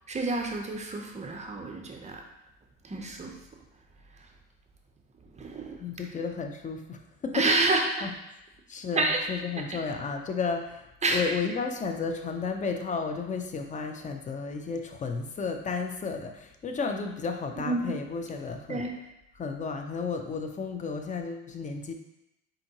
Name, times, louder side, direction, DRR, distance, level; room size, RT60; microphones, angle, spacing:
voice 1, 0.1-2.2 2.8-3.4 5.2-5.8 7.3-8.1 9.0-9.2 9.7-9.8 11.0-11.4 17.6-18.0 18.7-18.9, right 2 dB, 15° right, 2 dB, 0.7 m, -29 dB
voice 2, 5.8-7.5 8.0-8.1 8.7-18.9 19.3-21.9, left 5 dB, 20° left, 5 dB, 0.4 m, -33 dB
4.2 x 3.7 x 2.9 m, 0.89 s
hypercardioid pair, 75°, 40 cm